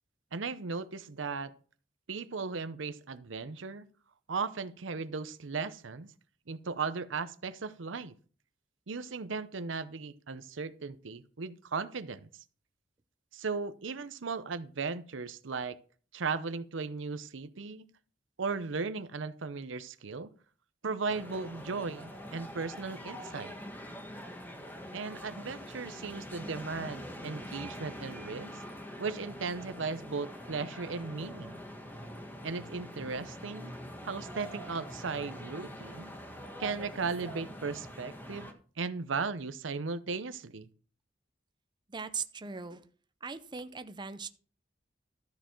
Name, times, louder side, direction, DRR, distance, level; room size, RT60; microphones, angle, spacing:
voice 1, 0.3-1.5 2.1-3.9 4.3-6.1 6.5-8.1 8.9-12.4 13.3-15.8 16.1-17.9 18.4-20.3 20.8-23.5 24.9-28.6 29.0-31.6 32.4-33.7 34.0-36.1 36.6-40.7, right 4 dB, 85° right, 13 dB, 0.7 m, -37 dB
sound 1, 21.1-38.5, equal, 10° left, 1.4 m, -44 dB
voice 2, 41.9-42.9 43.2-44.3, right 5 dB, 25° right, 10 dB, 0.6 m, -39 dB
13.0 x 6.8 x 4.5 m, 0.41 s
head